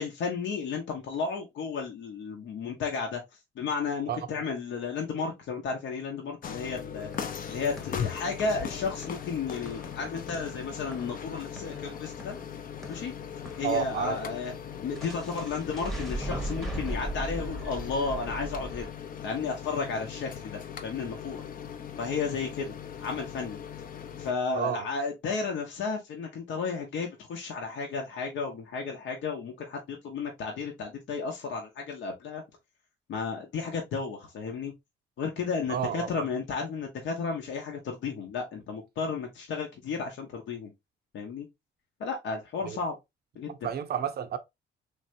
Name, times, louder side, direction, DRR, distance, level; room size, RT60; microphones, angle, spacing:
voice 1, 0.0-3.2 3.6-7.1 7.5-12.4 12.9-13.1 13.6-14.5 14.8-18.9 19.2-21.4 22.0-23.6 24.2-32.4 33.1-34.7 35.2-40.7 41.1-41.5 42.0-42.9 43.4-43.5, left 5 dB, 70° left, 0.8 m, -33 dB
sound 1, 6.4-24.3, left 8 dB, 45° left, 0.6 m, -39 dB
sound 2, 6.9-13.9 15.0-18.9, right 1 dB, ahead, 0.8 m, -39 dB
voice 2, 13.6-14.2 24.5-24.9 35.7-36.1 42.7-42.8 43.5-44.4, right 8 dB, 55° right, 0.6 m, -30 dB
3.2 x 2.7 x 2.6 m
cardioid pair, 90°, 20 cm